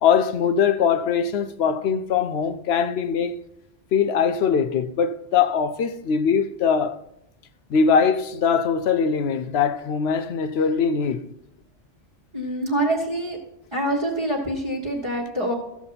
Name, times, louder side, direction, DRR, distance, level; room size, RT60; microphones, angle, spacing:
voice 1, 0.0-3.4 3.9-7.0 7.7-11.2, left 6 dB, 65° left, 0.8 m, -21 dB
voice 2, 12.3-13.4 13.7-15.5, right 1 dB, 25° right, 1.5 m, -25 dB
14.0 x 7.2 x 4.1 m
omnidirectional pair, 1.2 m